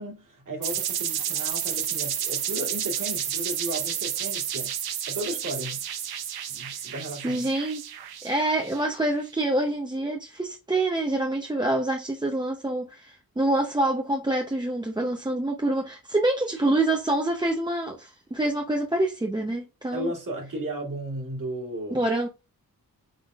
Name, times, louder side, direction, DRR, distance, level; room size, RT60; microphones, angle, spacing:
voice 1, 0.0-5.8 6.5-7.5 19.9-22.1, right 1 dB, 55° right, 2.4 m, -35 dB
sound 1, 0.6-9.1, right 9 dB, 80° right, 0.7 m, -31 dB
voice 2, 7.2-7.8 8.2-20.1 21.9-22.3, right 2 dB, 10° right, 0.7 m, -26 dB
5.4 x 3.6 x 2.4 m
cardioid pair, 95°, 37 cm